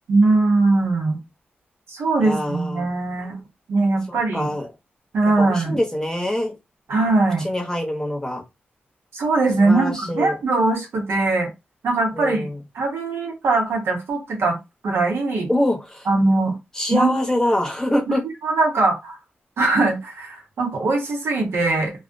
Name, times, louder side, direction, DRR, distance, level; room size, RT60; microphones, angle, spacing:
voice 1, 0.1-1.2 1.9-3.4 3.7-4.5 5.1-5.8 6.9-7.5 9.1-11.5 11.8-14.6 14.8-15.5 16.1-16.5 16.9-17.2 18.1-19.2 19.6-21.9, right 3 dB, 80° right, 0.8 m, -21 dB
voice 2, 2.2-2.9 4.1-4.7 5.4-6.5 7.4-8.4 9.6-10.4 12.1-12.6 15.5-16.1 16.8-18.2, left 1 dB, 15° left, 0.8 m, -24 dB
2.3 x 2.0 x 2.5 m
cardioid pair, 70°, 4 cm